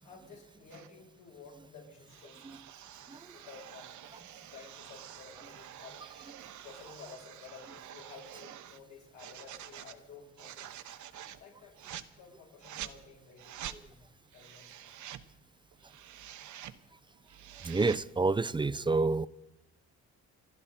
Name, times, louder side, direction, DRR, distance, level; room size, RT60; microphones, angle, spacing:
voice 1, 0.0-2.6 3.3-6.1 6.6-10.7 11.4-11.7 12.2-15.0, left 5 dB, 80° left, -2 dB, 7.6 m, -53 dB
sound 1, 0.7-0.9 2.1-8.8 9.2-10.0 10.4-11.4 11.8-12.1 12.6-13.0 13.4-13.8 14.3-15.3 15.7-16.8 17.1-18.1, right 11 dB, 75° right, 1.0 m, -47 dB
voice 2, 17.6-19.3, right 3 dB, 15° right, 18 dB, 0.5 m, -28 dB
28.0 x 12.0 x 4.3 m, 1.0 s
cardioid pair, 90°, 30 cm